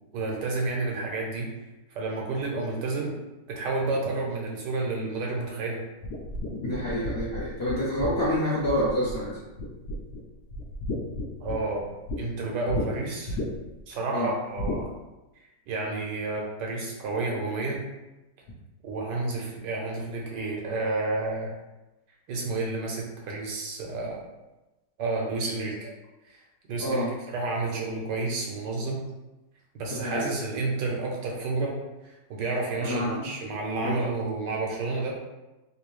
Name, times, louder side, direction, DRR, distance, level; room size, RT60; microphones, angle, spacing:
voice 1, 0.1-1.5 1.9-3.1 3.5-5.8 11.4-11.9 12.2-13.4 13.9-14.9 15.7-17.8 18.8-21.5 22.3-24.2 25.0-25.7 26.3-26.4 26.7-27.0 27.3-29.0 29.7-31.8 32.0-35.2, right 3 dB, 80° right, -2 dB, 1.4 m, -30 dB
sound 1, 6.0-9.3 9.6-10.2 10.5-12.2 12.7-12.9 13.3-13.8 14.6-14.8, left 1 dB, 75° left, 1.2 m, -33 dB
voice 2, 6.6-9.4 14.1-14.3 26.8-27.1 29.9-30.3 32.8-33.3 33.8-33.9, equal, 55° left, -8 dB, 0.7 m, -27 dB
3.4 x 2.7 x 3.0 m, 1.0 s
omnidirectional pair, 1.9 m